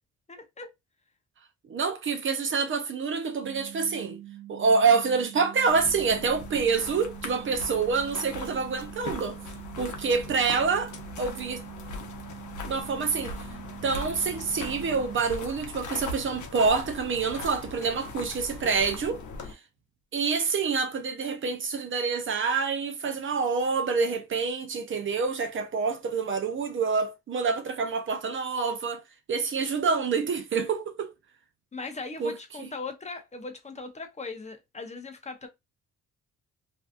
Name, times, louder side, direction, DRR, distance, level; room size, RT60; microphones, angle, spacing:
voice 1, 0.3-0.7 31.7-35.5, left 3 dB, 25° left, 0.6 m, -39 dB
voice 2, 1.7-4.2 4.5-9.4 9.8-11.6 12.7-13.3 13.8-19.2 19.5-19.6 20.1-29.0 29.3-31.1 32.2-32.7, right 5 dB, 40° right, 0.5 m, -27 dB
sound 1, 3.4-15.1, right 14 dB, 25° right, 1.0 m, -45 dB
sound 2, 5.7-19.5, left 3 dB, 70° left, 0.7 m, -40 dB
2.6 x 2.3 x 2.4 m
cardioid pair, 90°, 30 cm